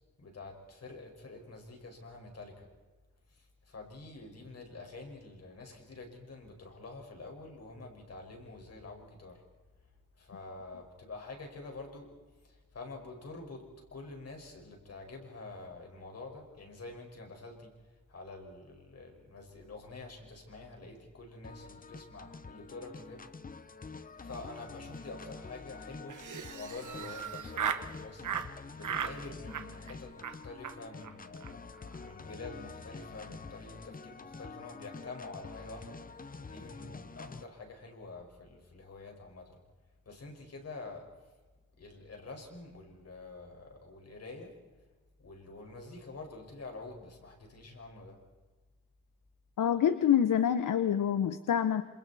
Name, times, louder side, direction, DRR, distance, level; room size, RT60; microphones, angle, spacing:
voice 1, 0.2-2.7 3.3-9.4 10.2-12.1 12.4-17.7 18.1-23.3 24.2-26.2 26.5-28.3 28.7-31.6 32.0-36.0 36.4-39.6 40.1-41.1 41.8-44.5 45.2-48.2, left 3 dB, 55° left, 2 dB, 5.2 m, -47 dB
sound 1, 21.4-37.4, left 4 dB, 30° left, 0.9 m, -47 dB
Laughter, 26.1-27.9 28.2-28.5 28.8-29.2 29.5-29.9 30.2-30.4 30.6-30.7 31.0-31.1 31.4-31.5 31.8-32.1, right 8 dB, 75° right, 1.1 m, -36 dB
voice 2, 49.6-51.8, left 9 dB, 90° left, 11 dB, 1.0 m, -26 dB
28.0 x 27.0 x 4.2 m, 1.3 s
wide cardioid pair, 155°, 31 cm